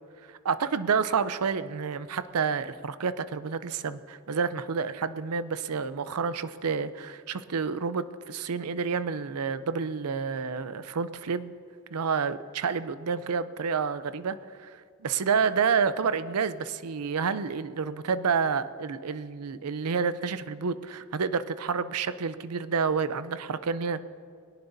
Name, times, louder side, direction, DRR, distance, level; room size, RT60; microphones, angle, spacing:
voice 1, 0.3-11.5 11.9-24.0, right 5 dB, 80° right, 13 dB, 0.6 m, -29 dB
21.5 x 18.0 x 2.7 m, 2.3 s
head